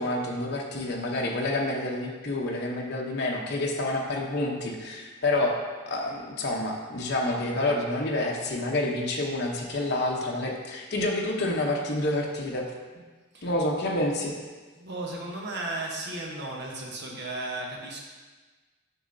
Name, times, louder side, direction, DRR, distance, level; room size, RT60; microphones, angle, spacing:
voice 1, 0.0-12.7 13.4-14.3, left 2 dB, 50° left, -1 dB, 0.8 m, -28 dB
voice 2, 14.8-18.0, right 2 dB, 50° right, -2 dB, 1.0 m, -35 dB
6.7 x 6.2 x 2.6 m, 1.3 s
head